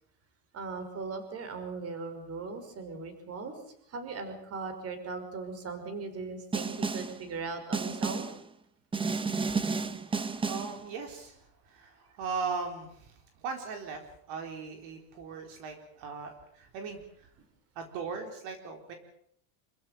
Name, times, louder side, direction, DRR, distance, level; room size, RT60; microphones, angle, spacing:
voice 1, 0.5-3.6 3.9-8.3, right 4 dB, 30° right, 9 dB, 5.5 m, -39 dB
Snare drum, 6.5-7.2 7.7-8.4 8.9-10.8, right 4 dB, 10° right, 1.0 m, -31 dB
voice 2, 9.5-13.1 13.4-14.0 14.3-17.0 17.8-18.9, right 5 dB, 55° right, 5 dB, 4.4 m, -39 dB
27.5 x 15.5 x 9.2 m, 0.69 s
supercardioid pair, 155°, 47 cm